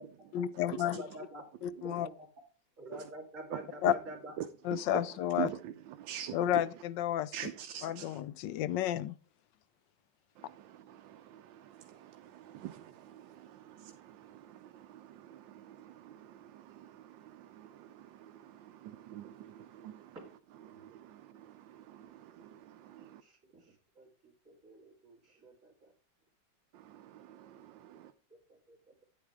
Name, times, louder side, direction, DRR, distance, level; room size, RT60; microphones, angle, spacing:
voice 1, 0.3-1.0 1.6-2.1 3.8-3.9 4.6-5.5 6.3-7.3 7.8-9.2, left 12 dB, 75° left, 1.2 m, -31 dB
voice 2, 1.0-1.4 1.8-2.1 2.8-4.3 23.2-23.6 24.0-24.1 24.5-25.2 25.4-25.5, right 1 dB, 40° right, 2.9 m, -46 dB
voice 3, 3.5-3.9 4.4-5.0 5.4-6.6 7.3-8.2 10.4-23.2 26.7-28.1, right 11 dB, 80° right, 1.4 m, -46 dB
9.6 x 8.4 x 3.5 m
omnidirectional pair, 2.1 m